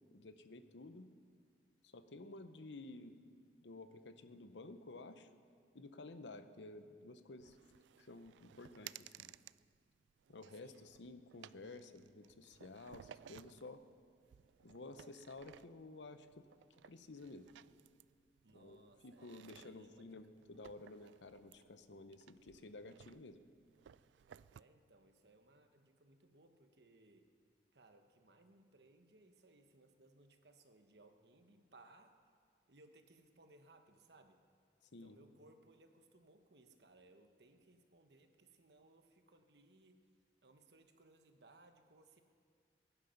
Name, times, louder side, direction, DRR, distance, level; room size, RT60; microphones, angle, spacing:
voice 1, 0.1-1.1 1.8-3.2 3.6-5.3 5.7-7.6 8.0-9.4 10.3-13.8 14.6-16.5 16.8-17.5 18.5-23.4 34.9-35.2, left 2 dB, 85° left, 10 dB, 0.8 m, -53 dB
sound 1, 7.4-24.6, right 10 dB, 85° right, 0.3 m, -60 dB
voice 2, 10.6-10.9 18.4-20.2 24.5-27.3 27.7-32.3 32.7-34.4 34.9-40.0 40.4-42.2, right 2 dB, 70° right, 6 dB, 1.2 m, -65 dB
21.5 x 9.8 x 5.8 m, 2.1 s
head